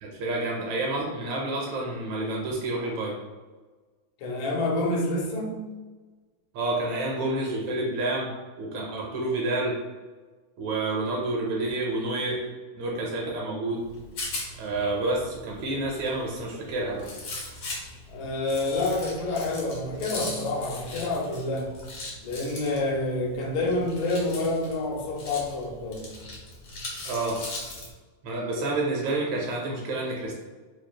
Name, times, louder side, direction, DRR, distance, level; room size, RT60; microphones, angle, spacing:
voice 1, 0.0-3.2 6.5-8.3 8.6-9.8 10.6-12.5 12.7-13.8 14.6-17.1 27.1-27.4 28.2-30.3, right 2 dB, 75° right, -2 dB, 1.8 m, -29 dB
voice 2, 4.2-5.7 18.1-21.7 22.2-26.1, left 2 dB, 90° left, 0 dB, 2.3 m, -28 dB
Rattle, 13.8-27.9, left 2 dB, 70° left, 1.0 m, -40 dB
6.0 x 2.5 x 2.3 m, 1.3 s
omnidirectional pair, 3.6 m